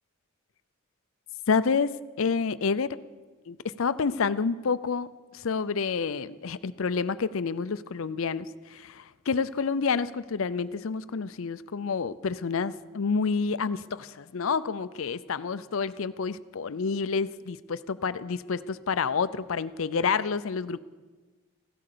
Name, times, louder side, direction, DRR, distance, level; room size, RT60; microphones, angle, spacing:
voice 1, 1.5-3.0 3.5-20.8, left 5 dB, 65° left, 15 dB, 0.5 m, -29 dB
15.5 x 12.5 x 6.7 m, 1.3 s
head